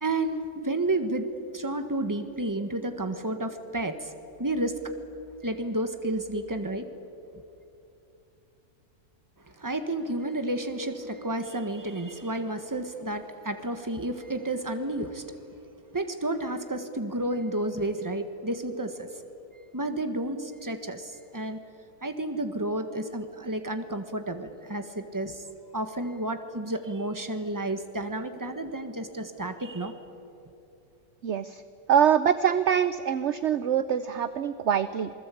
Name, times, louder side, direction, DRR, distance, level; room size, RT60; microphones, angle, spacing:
voice 1, 0.0-1.2 1.5-4.1 4.4-4.8 5.4-6.9 9.4-15.4 15.9-19.1 19.7-21.6 22.0-25.4 25.7-30.0, right 1 dB, 10° right, 8 dB, 1.5 m, -31 dB
voice 2, 31.2-31.6 31.9-35.1, right 8 dB, 55° right, 13 dB, 0.9 m, -24 dB
27.5 x 20.5 x 8.5 m, 2.8 s
omnidirectional pair, 1.7 m